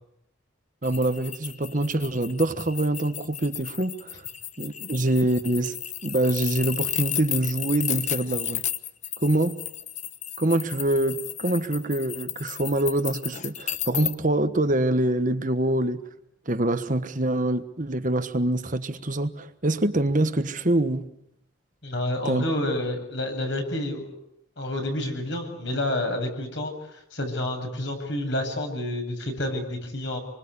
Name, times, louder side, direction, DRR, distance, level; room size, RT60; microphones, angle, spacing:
sound 1, 0.8-14.1, left 11 dB, 35° left, 1.1 m, -33 dB
voice 1, 0.8-4.3 4.6-5.8 6.0-8.6 9.2-9.6 10.4-16.1 16.5-21.1 22.2-22.4, right 1 dB, 40° right, 1.3 m, -25 dB
voice 2, 21.8-24.1 24.6-30.2, left 1 dB, 60° left, 8.0 m, -29 dB
27.5 x 25.0 x 8.4 m
head